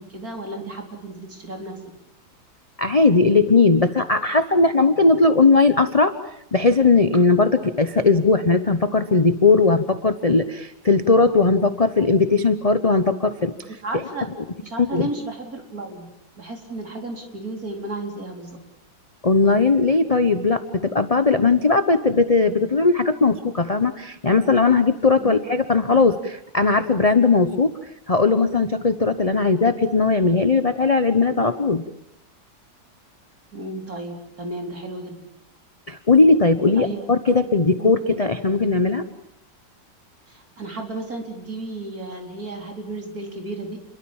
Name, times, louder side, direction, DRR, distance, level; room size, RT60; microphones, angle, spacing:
voice 1, 0.0-1.8 13.7-14.3 14.6-16.1 16.4-18.6 25.2-25.4 33.5-35.2 36.7-37.0 37.8-38.0 40.3-43.8, right 2 dB, 45° right, 2 dB, 4.5 m, -33 dB
voice 2, 2.8-6.1 6.5-13.5 14.9-15.1 19.2-27.7 28.1-31.8 35.9-39.0, left 3 dB, 30° left, 9 dB, 0.7 m, -18 dB
29.0 x 23.0 x 7.3 m, 0.78 s
omnidirectional pair, 2.1 m